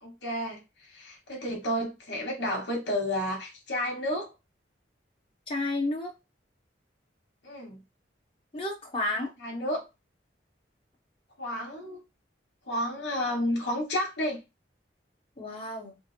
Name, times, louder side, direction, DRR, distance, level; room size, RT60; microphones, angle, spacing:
voice 1, 0.0-4.3 7.4-7.8 9.4-9.8 11.4-12.0 12.7-14.4, left 1 dB, 70° left, 1.7 m, -31 dB
voice 2, 5.5-6.1 8.5-9.3 15.4-15.9, left 2 dB, 30° left, 1.5 m, -31 dB
4.5 x 2.2 x 4.5 m
head